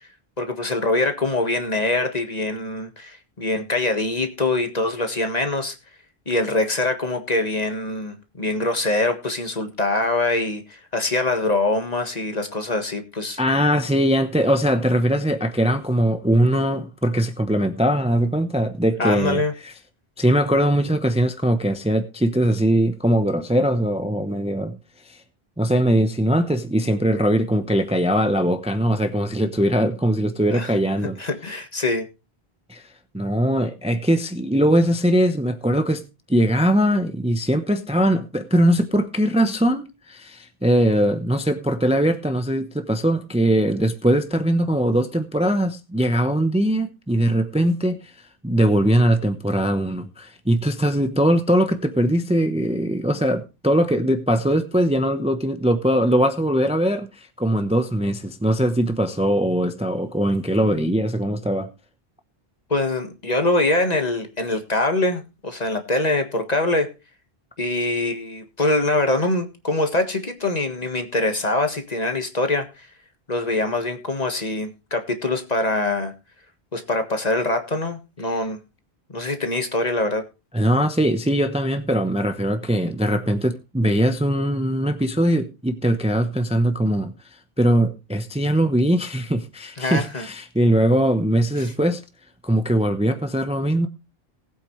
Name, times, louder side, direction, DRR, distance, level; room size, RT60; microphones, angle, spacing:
voice 1, 0.4-5.8 6.3-13.4 19.0-19.5 30.5-30.7 31.2-32.1 62.7-66.9 67.6-72.9 73.3-76.1 76.7-78.6 79.1-80.2 89.8-90.3 91.6-91.7, left 2 dB, 40° left, 1.7 m, -24 dB
voice 2, 13.4-19.7 20.2-24.8 25.1-25.2 25.6-31.2 32.7-32.8 33.1-36.0 36.3-48.1 48.4-61.7 80.5-87.1 87.6-92.0 92.4-93.9, right 1 dB, 5° right, 0.8 m, -21 dB
19.0 x 8.4 x 3.2 m
omnidirectional pair, 1.0 m